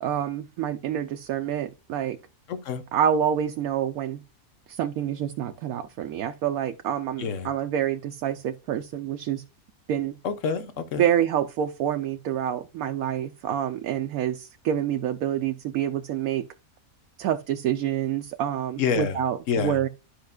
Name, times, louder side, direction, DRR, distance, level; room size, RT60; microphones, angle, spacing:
voice 1, 0.0-2.2 2.9-4.2 4.7-9.4 9.9-10.2 11.0-16.5 17.2-19.9, right 9 dB, 75° right, 1.1 m, -27 dB
voice 2, 2.5-2.8 7.2-7.5 10.2-11.0 18.8-19.2 19.5-19.8, left 6 dB, 60° left, 1.3 m, -27 dB
12.0 x 5.4 x 2.3 m
omnidirectional pair, 1.6 m